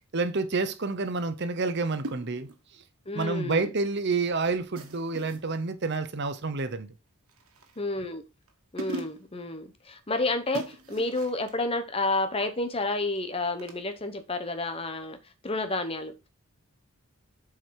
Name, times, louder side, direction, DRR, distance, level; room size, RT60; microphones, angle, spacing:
voice 1, 0.1-2.5 3.1-6.9, right 3 dB, 50° right, 0.7 m, -29 dB
sound 1, 2.0-2.6 4.8-5.5 7.3-7.9 8.5-8.6 8.8-9.4 10.5-11.5 13.6-13.8, right 2 dB, 75° right, 1.6 m, -40 dB
voice 2, 3.1-3.7 7.8-8.2 8.7-15.2 15.4-16.3, left 2 dB, 25° left, 0.9 m, -30 dB
7.6 x 4.9 x 4.7 m
head